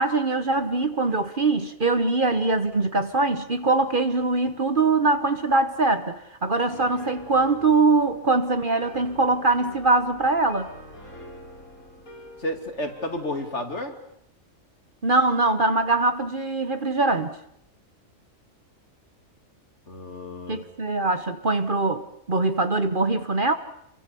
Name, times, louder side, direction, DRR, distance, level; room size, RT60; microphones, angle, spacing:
voice 1, 0.0-10.7 15.0-17.3 20.5-23.5, right 3 dB, 40° right, 1.3 m, -22 dB
Piano, 6.7-13.6, left 1 dB, 75° left, 6.7 m, -46 dB
voice 2, 12.4-13.9 19.9-20.6, left 1 dB, 55° left, 3.1 m, -31 dB
28.0 x 23.5 x 7.1 m
omnidirectional pair, 1.4 m